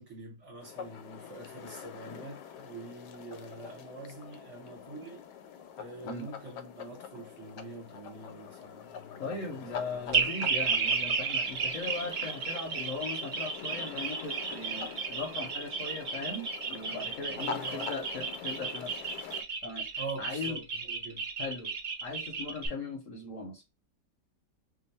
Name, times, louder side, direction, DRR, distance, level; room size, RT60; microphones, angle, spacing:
voice 1, 0.0-5.2 5.8-9.6 9.9-10.0 10.3-10.5 17.3-17.9 20.0-21.3, right 3 dB, 45° right, 1.3 m, -45 dB
sound 1, 0.6-19.4, left 7 dB, 80° left, 1.2 m, -45 dB
voice 2, 9.2-19.0 19.6-20.6 21.4-21.7 22.0-23.6, left 3 dB, 60° left, 0.9 m, -39 dB
sound 2, 10.1-22.7, right 5 dB, 80° right, 0.4 m, -33 dB
2.9 x 2.2 x 4.1 m
omnidirectional pair, 1.9 m